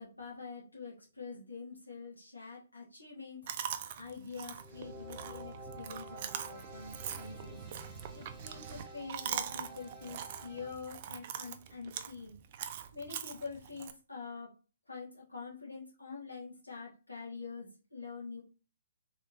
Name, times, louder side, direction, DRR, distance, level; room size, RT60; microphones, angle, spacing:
voice 1, 0.0-3.4 4.0-12.3 12.9-14.5 14.9-18.4, left 4 dB, 90° left, -5 dB, 1.7 m, -46 dB
Chewing mastication, 3.5-13.9, right 9 dB, 45° right, 0.4 m, -42 dB
sound 1, 4.5-10.8, right 1 dB, ahead, 0.9 m, -50 dB
3.6 x 3.3 x 2.7 m, 0.34 s
figure-of-eight pair, 125°, 0 cm